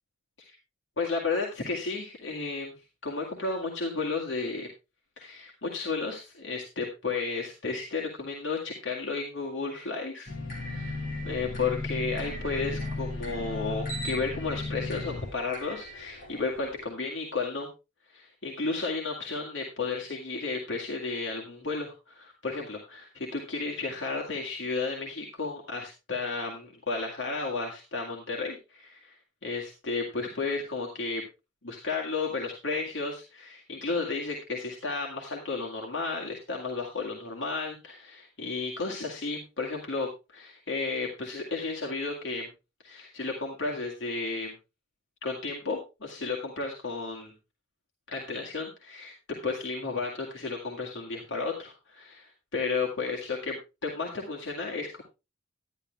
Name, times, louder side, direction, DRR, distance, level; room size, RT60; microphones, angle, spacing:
voice 1, 1.0-2.7 3.0-4.7 5.2-11.0 11.2-17.7 18.1-29.2 29.4-31.2 31.6-42.5 42.8-44.5 45.2-47.3 48.1-49.1 49.4-55.0, left 4 dB, 70° left, -1 dB, 2.2 m, -33 dB
sound 1, 10.3-16.8, left 2 dB, 50° left, 5.0 m, -35 dB
11.5 x 11.0 x 3.3 m, 0.27 s
head